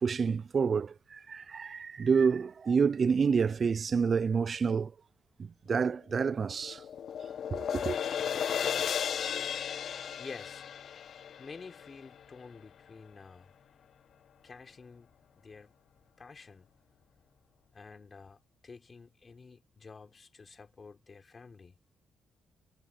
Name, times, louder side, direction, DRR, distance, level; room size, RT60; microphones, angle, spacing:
voice 1, 0.0-4.9 5.7-6.8 7.5-8.0, right 5 dB, 45° right, 0.4 m, -28 dB
sound 1, 6.1-12.4, left 8 dB, 60° left, 0.5 m, -35 dB
voice 2, 10.2-10.7 11.4-13.5 14.4-15.1 15.4-15.8 16.2-16.7 17.7-21.8, left 4 dB, 35° left, 4.1 m, -50 dB
cardioid pair, 90°, 0 cm